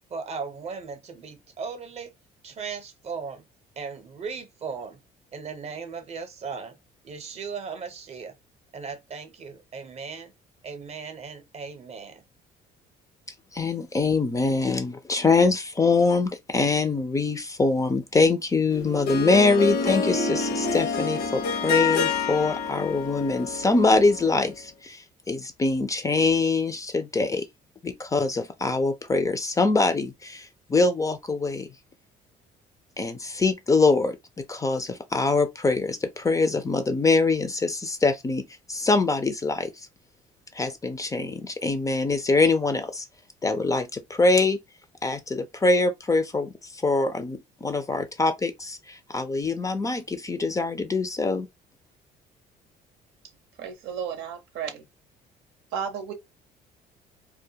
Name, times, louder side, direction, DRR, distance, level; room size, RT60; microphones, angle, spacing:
voice 1, 0.1-2.1 2.4-3.4 3.8-5.0 5.3-6.8 7.0-8.3 8.7-10.3 10.6-12.2, right 5 dB, 40° right, 0.7 m, -37 dB
voice 2, 13.5-27.4 27.8-31.7 33.0-39.9 40.5-43.1 43.4-44.6 45.0-51.5, left 3 dB, 20° left, 0.4 m, -24 dB
Harp, 18.7-24.5, left 5 dB, 70° left, 0.7 m, -28 dB
voice 3, 53.6-54.8 55.7-56.1, right 7 dB, 90° right, 0.7 m, -33 dB
2.2 x 2.1 x 2.7 m
cardioid pair, 110°, 17 cm